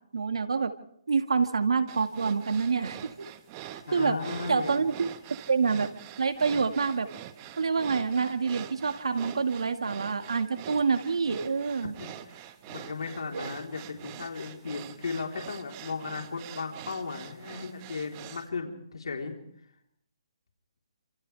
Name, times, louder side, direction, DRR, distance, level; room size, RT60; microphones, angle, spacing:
voice 1, 0.1-0.7 1.1-3.3 3.7-4.2 4.5-5.1 5.5-5.9 6.2-7.1 7.6-11.9 13.3-13.5, right 5 dB, 85° right, 7 dB, 2.0 m, -27 dB
sound 1, 1.9-18.5, right 12 dB, 25° right, 1.4 m, -45 dB
voice 2, 3.9-4.8 11.8-19.3, left 4 dB, 85° left, 2 dB, 3.9 m, -36 dB
29.0 x 26.5 x 3.5 m, 0.69 s
hypercardioid pair, 160°, 3 cm